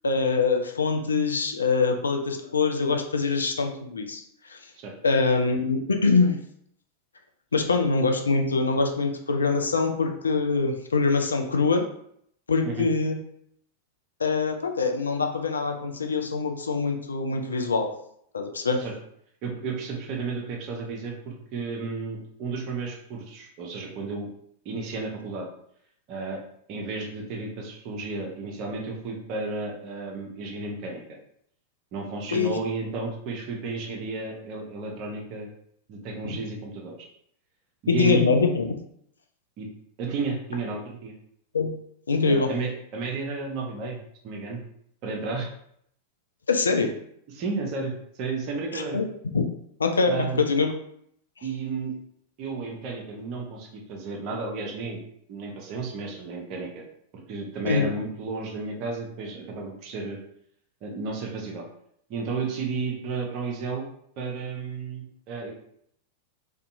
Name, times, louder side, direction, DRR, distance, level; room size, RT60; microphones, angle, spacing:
voice 1, 0.0-4.2 4.5-4.6 5.0-6.4 7.5-11.8 12.5-13.2 14.2-17.9 18.3-18.8 32.3-32.5 36.2-36.4 37.9-38.6 41.5-41.7 42.1-42.5 46.5-46.9 48.7-49.1 49.3-49.4 49.8-50.7 57.6-57.9, left 4 dB, 75° left, 4 dB, 0.3 m, -24 dB
voice 2, 19.4-24.3 24.6-25.5 26.1-26.4 26.7-31.0 31.9-35.5 35.9-37.1 37.8-38.3 39.6-39.7 40.0-41.1 42.2-44.6 45.0-45.5 47.3-49.0 50.1-50.4 51.4-51.9 52.4-55.0 55.3-56.8 57.1-60.2 60.8-61.6 62.1-63.9 64.2-65.5, right 4 dB, 40° right, 0 dB, 0.6 m, -32 dB
2.6 x 2.2 x 2.5 m, 0.69 s
figure-of-eight pair, 90°, 0 cm